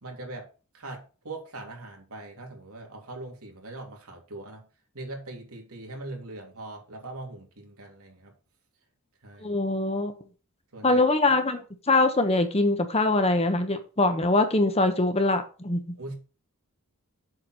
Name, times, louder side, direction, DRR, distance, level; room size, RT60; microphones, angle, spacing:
voice 1, 0.0-0.5 0.7-4.7 4.9-8.3 9.2-9.5 10.7-11.0 16.0-16.1, right 2 dB, 85° right, 3.1 m, -41 dB
voice 2, 9.4-10.1 10.8-15.8, left 2 dB, 30° left, 1.2 m, -23 dB
7.8 x 4.7 x 6.3 m
head